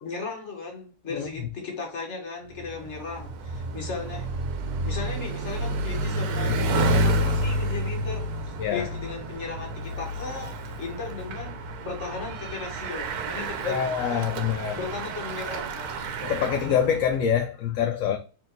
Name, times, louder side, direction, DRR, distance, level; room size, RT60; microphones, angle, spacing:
voice 1, 0.0-4.3 4.8-8.3 8.7-11.6 11.8-14.3 14.7-16.1, left 4 dB, 50° left, 1.5 m, -36 dB
Bicycle, 2.6-17.2, right 1 dB, 75° right, 1.2 m, -30 dB
voice 2, 13.6-14.8 16.2-18.2, left 8 dB, 70° left, 0.9 m, -25 dB
4.4 x 3.0 x 4.0 m
omnidirectional pair, 1.7 m